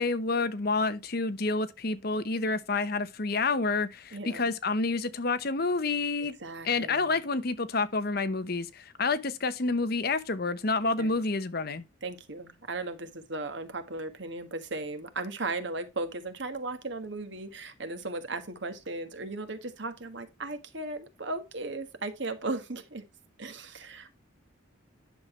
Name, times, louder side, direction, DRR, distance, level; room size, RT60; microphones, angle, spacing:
voice 1, 0.0-6.3 6.6-11.8, left 3 dB, 50° left, 0.8 m, -29 dB
voice 2, 4.1-4.5 6.2-7.2 11.0-11.2 12.0-23.1 23.4-24.1, right 2 dB, 60° right, 1.5 m, -36 dB
10.5 x 6.6 x 3.2 m
head